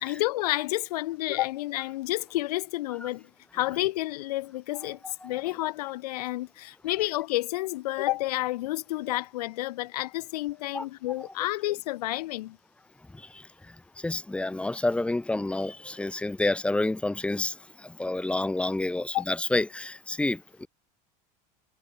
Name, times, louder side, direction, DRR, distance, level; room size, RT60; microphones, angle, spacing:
voice 1, 0.0-3.2 3.5-12.6 19.1-19.2, left 17 dB, 90° left, 1.3 m, -30 dB
voice 2, 5.0-5.4 10.7-10.9 13.1-13.4 14.0-20.7, left 2 dB, 5° left, 3.5 m, -29 dB
supercardioid pair, 140°, 19 cm